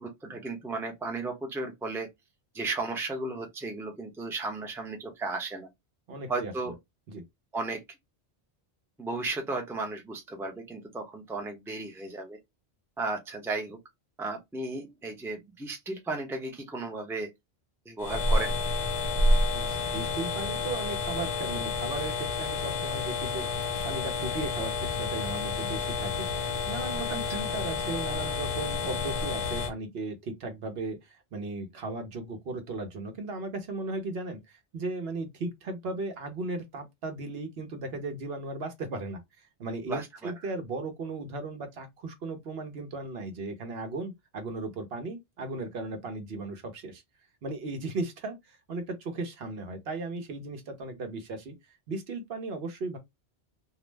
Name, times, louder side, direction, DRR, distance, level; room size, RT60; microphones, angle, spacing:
voice 1, 0.0-2.1 2.5-5.7 6.3-6.8 7.5-7.8 9.0-12.4 13.0-13.8 14.2-17.3 17.9-18.5 27.3-27.4 39.9-40.3, right 3 dB, 5° right, 0.5 m, -34 dB
voice 2, 6.1-6.5 7.1-7.2 19.5-39.2 39.6-47.0 47.4-51.5 51.9-53.0, right 3 dB, 70° right, 1.0 m, -36 dB
sound 1, 18.0-29.7, left 3 dB, 45° left, 0.4 m, -29 dB
2.5 x 2.0 x 3.2 m
omnidirectional pair, 1.1 m